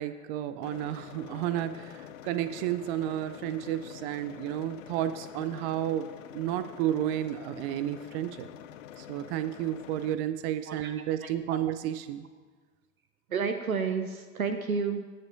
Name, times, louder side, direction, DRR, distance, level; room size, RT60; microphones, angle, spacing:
voice 1, 0.0-6.1 6.3-8.5 9.0-12.3, right 12 dB, 45° right, 12 dB, 0.5 m, -32 dB
sound 1, 0.6-10.1, left 11 dB, 65° left, 0.6 m, -46 dB
voice 2, 10.7-11.6 13.3-15.0, right 5 dB, 85° right, 8 dB, 0.6 m, -31 dB
19.0 x 7.5 x 2.6 m, 1.4 s
figure-of-eight pair, 70°, 41 cm